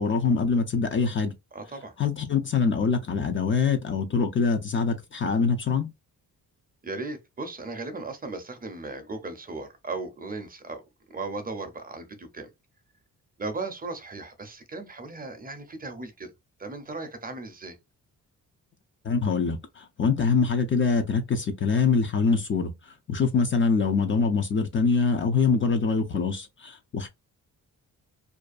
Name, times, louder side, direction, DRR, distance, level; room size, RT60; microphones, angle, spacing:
voice 1, 0.0-1.3 2.0-5.9 19.0-27.1, left 5 dB, 35° left, 0.4 m, -24 dB
voice 2, 1.5-1.9 6.8-10.8 11.1-12.5 13.4-16.3 16.6-17.8, right 3 dB, 25° right, 0.5 m, -36 dB
2.6 x 2.2 x 2.3 m
cardioid pair, 120°, 34 cm